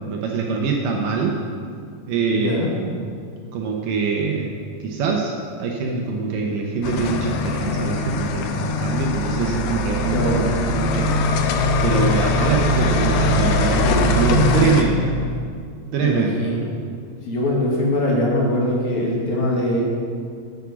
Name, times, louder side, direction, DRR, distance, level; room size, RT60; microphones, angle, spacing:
voice 1, 0.1-1.4 2.1-2.7 3.5-4.5 4.8-11.1 11.8-15.2 15.9-16.5, right 5 dB, 70° right, 0 dB, 2.3 m, -24 dB
voice 2, 2.3-2.7 10.1-10.5 16.0-16.6 17.3-19.8, left 1 dB, 55° left, -3 dB, 2.7 m, -22 dB
sound 1, 6.8-14.8, left 2 dB, 80° left, 2.7 m, -21 dB
9.9 x 8.4 x 6.1 m, 2.2 s
omnidirectional pair, 4.4 m